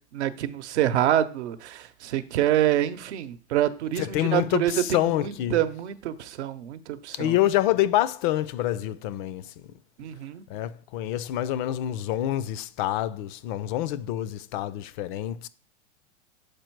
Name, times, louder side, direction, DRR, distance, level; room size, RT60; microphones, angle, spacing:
voice 1, 0.1-7.3 10.0-10.4, right 12 dB, 70° right, 0.8 m, -26 dB
voice 2, 4.0-5.6 7.1-9.5 10.5-15.5, left 13 dB, 45° left, 0.5 m, -27 dB
6.6 x 4.4 x 4.5 m
hypercardioid pair, 120°, 34 cm